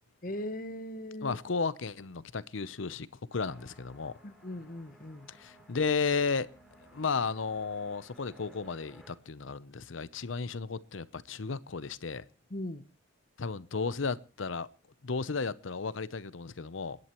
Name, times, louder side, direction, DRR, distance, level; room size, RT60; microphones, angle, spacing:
voice 1, 0.2-1.4 4.2-5.3 12.5-12.8, left 1 dB, 45° left, 0.9 m, -39 dB
voice 2, 1.2-4.1 5.3-6.5 6.9-12.2 13.4-14.7 15.0-17.0, left 4 dB, 85° left, 0.7 m, -34 dB
sound 1, 3.3-9.1, equal, ahead, 3.3 m, -58 dB
29.5 x 11.0 x 3.0 m
head